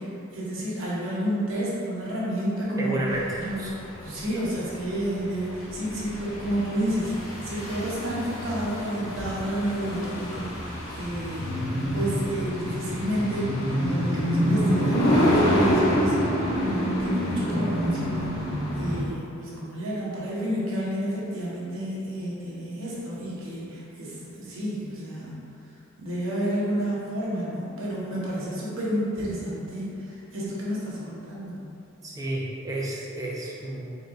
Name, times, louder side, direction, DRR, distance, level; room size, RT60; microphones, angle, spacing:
voice 1, 0.0-3.0 3.4-3.7 4.0-11.5 11.9-18.5 18.8-25.5 26.0-31.7, right 1 dB, 80° right, -7 dB, 1.0 m, -30 dB
voice 2, 2.8-3.7 32.0-33.9, right 1 dB, 20° right, -4 dB, 0.6 m, -31 dB
sound 1, 3.1-19.0, equal, 85° left, 1.1 m, -27 dB
4.2 x 3.8 x 2.5 m, 2.6 s
head